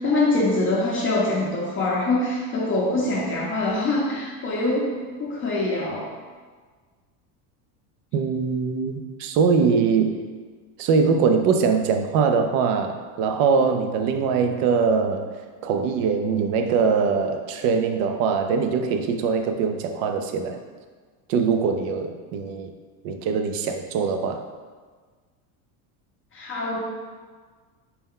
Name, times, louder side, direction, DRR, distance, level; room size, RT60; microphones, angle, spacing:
voice 1, 0.0-4.9 5.2-6.1 26.3-26.8, left 2 dB, 30° left, -4 dB, 0.6 m, -24 dB
voice 2, 8.1-10.2 10.8-15.3 15.6-20.6 21.3-22.7 23.0-24.4, right 5 dB, 55° right, 6 dB, 0.5 m, -22 dB
4.3 x 2.2 x 3.6 m, 1.5 s
supercardioid pair, 125°, 43 cm